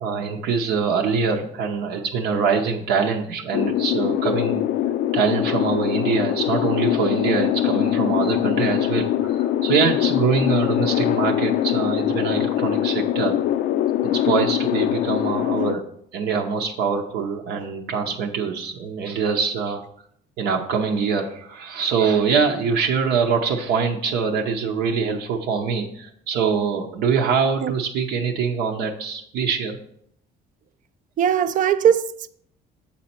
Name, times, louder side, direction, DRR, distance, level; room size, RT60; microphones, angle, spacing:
voice 1, 0.0-4.6 5.1-13.4 14.0-15.8 16.1-19.8 20.4-29.8, right 5 dB, 80° right, 0.7 m, -24 dB
sound 1, 3.5-15.7, left 12 dB, 65° left, 0.4 m, -22 dB
voice 2, 31.2-32.3, right 9 dB, 50° right, 0.4 m, -20 dB
7.4 x 4.2 x 4.3 m
cardioid pair, 110°, 17 cm